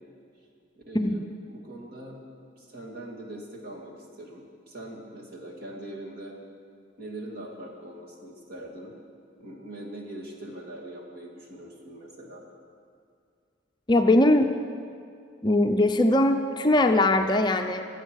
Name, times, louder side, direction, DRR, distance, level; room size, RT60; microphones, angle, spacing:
voice 1, 0.8-2.2 2.5-6.3 7.0-8.9 9.4-12.4, right 1 dB, 55° right, -2 dB, 2.6 m, -42 dB
voice 2, 13.9-14.5 15.4-17.8, left 1 dB, 25° left, 5 dB, 0.5 m, -21 dB
23.0 x 8.1 x 6.4 m, 2.3 s
head